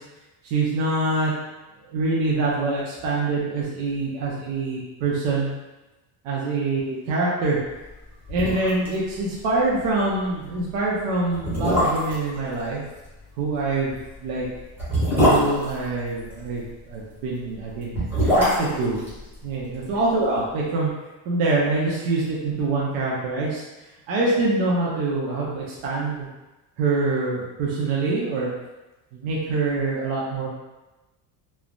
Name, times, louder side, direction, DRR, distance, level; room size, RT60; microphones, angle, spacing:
voice 1, 0.4-1.3 1.9-5.5 6.2-7.6 8.3-12.8 13.4-13.9 14.2-14.5 15.3-19.1 19.4-20.9 21.3-23.6 24.1-26.3 26.8-28.5 29.1-30.5, right 3 dB, 80° right, -5 dB, 0.7 m, -25 dB
sound 1, 7.9-8.0 8.3-8.9 9.2-9.3 9.7-9.9 10.6-10.7 11.3-12.3 13.8-16.5 17.7-20.0 20.2-20.3, equal, 5° right, 0.8 m, -22 dB
3.2 x 2.0 x 2.4 m, 1.1 s
cardioid pair, 160°, 44 cm